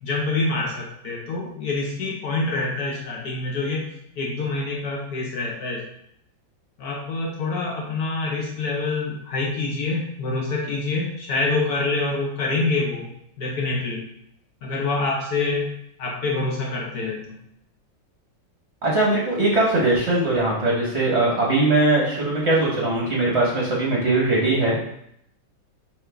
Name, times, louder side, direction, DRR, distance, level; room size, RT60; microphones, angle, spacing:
voice 1, 0.0-3.9 4.2-5.9 6.8-13.1 13.4-14.0 14.6-15.7 16.0-17.4, left 3 dB, 65° left, -1 dB, 1.0 m, -26 dB
voice 2, 18.8-24.8, right 2 dB, 45° right, -4 dB, 0.9 m, -20 dB
5.5 x 2.8 x 3.3 m, 0.74 s
omnidirectional pair, 2.1 m